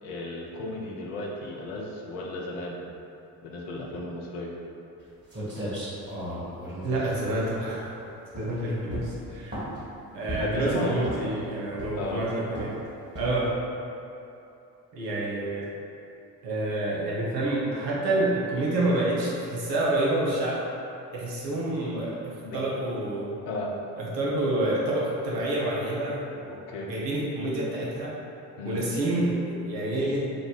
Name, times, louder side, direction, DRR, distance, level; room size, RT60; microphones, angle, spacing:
voice 1, 0.0-2.8 3.4-4.5 8.4-8.5 10.4-10.9 12.0-12.2 22.4-22.6 23.5-23.7 26.5-26.9 28.6-28.8, left 2 dB, 65° left, -2 dB, 0.7 m, -34 dB
sound 1, 5.0-5.1 5.3-7.9 8.3-8.6 8.9-9.9 10.3-10.6 11.0-11.4 11.8-12.2 12.5-12.8 13.2-13.5, equal, 20° right, 1.5 m, -35 dB
voice 2, 6.8-8.0 8.4-9.6 10.1-12.7 13.1-13.5 14.9-15.7 16.4-20.6 21.1-23.3 24.0-26.5 26.8-28.2 28.6-30.3, right 1 dB, 80° right, -5 dB, 0.8 m, -28 dB
3.8 x 2.3 x 3.8 m, 2.8 s
figure-of-eight pair, 40°, 49 cm